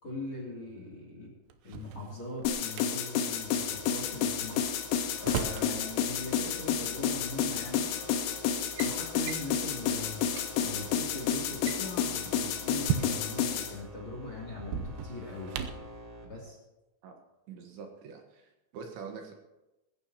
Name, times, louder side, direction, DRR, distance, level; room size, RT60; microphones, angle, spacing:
voice 1, 0.0-1.3 1.6-4.8 5.2-7.9 8.8-10.2 10.6-15.7 16.3-16.6, left 2 dB, 30° left, -3 dB, 2.9 m, -41 dB
Drawer open or close, 1.5-2.9 4.5-5.7 7.0-7.1 7.9-8.2 8.5-8.9 9.3-9.5 10.0-10.1 10.3-10.5 11.5-13.4 14.6-15.9, right 8 dB, 90° right, 2.4 m, -36 dB
sound 1, 2.5-13.7, left 8 dB, 85° left, 4.0 m, -30 dB
sound 2, 2.9-16.2, left 1 dB, 15° right, 1.8 m, -49 dB
voice 2, 17.5-19.3, right 5 dB, 70° right, 2 dB, 3.3 m, -45 dB
20.5 x 16.0 x 2.9 m, 1.0 s
omnidirectional pair, 5.9 m